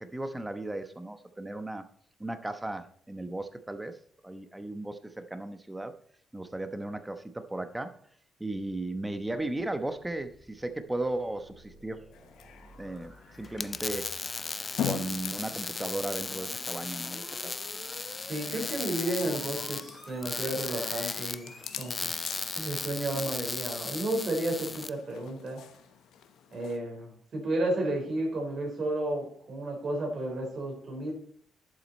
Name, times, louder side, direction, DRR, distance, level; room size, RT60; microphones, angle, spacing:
voice 1, 0.0-1.8 2.2-4.0 4.2-5.9 6.3-7.9 8.4-12.0 12.8-14.1 14.8-17.5, right 2 dB, 10° right, 9 dB, 1.0 m, -36 dB
sound 1, 8.7-22.8, left 1 dB, 10° left, 4.3 m, -52 dB
sound 2, 12.1-26.8, left 9 dB, 85° left, 1.0 m, -43 dB
sound 3, 13.4-24.9, left 4 dB, 30° left, 0.3 m, -36 dB
voice 2, 18.3-22.1 22.5-25.6 26.5-31.1, right 1 dB, 50° right, 2 dB, 4.6 m, -32 dB
11.5 x 7.6 x 4.3 m, 0.62 s
cardioid pair, 100°, 0 cm